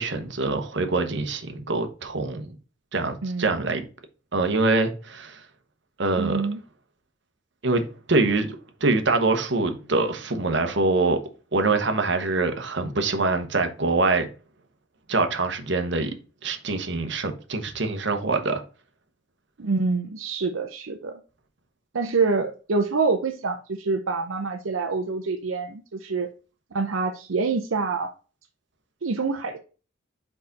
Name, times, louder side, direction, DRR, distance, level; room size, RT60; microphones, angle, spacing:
voice 1, 0.0-2.6 2.9-3.8 4.3-5.4 6.0-6.4 7.6-8.6 8.8-11.2 11.5-14.3 15.1-16.1 16.4-18.6, right 3 dB, 60° right, 1.0 m, -24 dB
voice 2, 3.2-3.5 6.2-6.6 19.6-21.2 21.9-26.3 26.7-28.1 29.0-29.6, right 4 dB, 80° right, 0.6 m, -26 dB
4.9 x 4.7 x 4.0 m
head